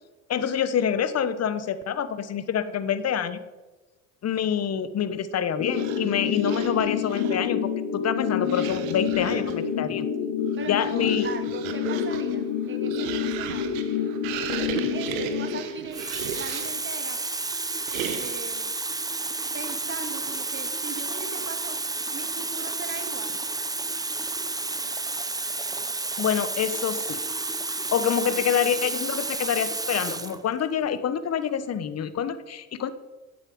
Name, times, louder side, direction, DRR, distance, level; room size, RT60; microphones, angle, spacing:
voice 1, 0.3-3.4 4.2-10.1 10.7-11.3 26.2-27.2 27.7-32.9, left 8 dB, 40° left, 13 dB, 1.0 m, -26 dB
sound 1, 5.6-15.6, left 7 dB, 65° left, 1.5 m, -28 dB
sound 2, 5.6-7.5 8.4-9.7 10.4-16.9 17.9-18.5, right 9 dB, 80° right, 1.2 m, -36 dB
voice 2, 10.6-13.8 14.9-16.0 16.3-17.2 18.2-18.7 19.5-21.8 22.1-23.4, right 5 dB, 30° right, 8 dB, 1.8 m, -39 dB
Water tap faucet, 15.1-15.3 15.9-30.4 31.3-31.5, right 3 dB, 10° right, 0.7 m, -31 dB
12.0 x 8.4 x 5.1 m, 1.2 s
supercardioid pair, 80°, 40 cm